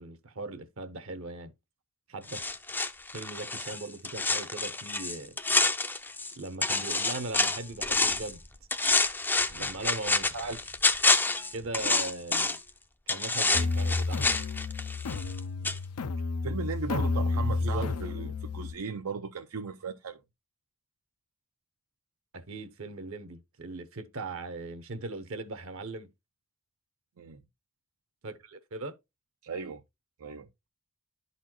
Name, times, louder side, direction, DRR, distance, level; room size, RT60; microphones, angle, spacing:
voice 1, 0.0-1.5 2.1-2.5 3.1-5.3 6.4-8.4 9.6-10.7 11.5-12.6 13.1-14.3 17.3-17.9 22.3-26.1 28.2-28.9, right 2 dB, 65° right, 0.9 m, -39 dB
sound 1, 2.3-6.3 6.6-8.3 8.7-12.7 13.1-15.4 15.6-15.8, left 3 dB, 10° left, 0.4 m, -28 dB
sound 2, 13.5-18.7, left 3 dB, 90° left, 0.5 m, -31 dB
voice 2, 16.4-20.2 27.2-27.4 29.4-29.8 30.2-30.5, right 5 dB, 80° right, 0.5 m, -37 dB
11.0 x 4.1 x 3.0 m
head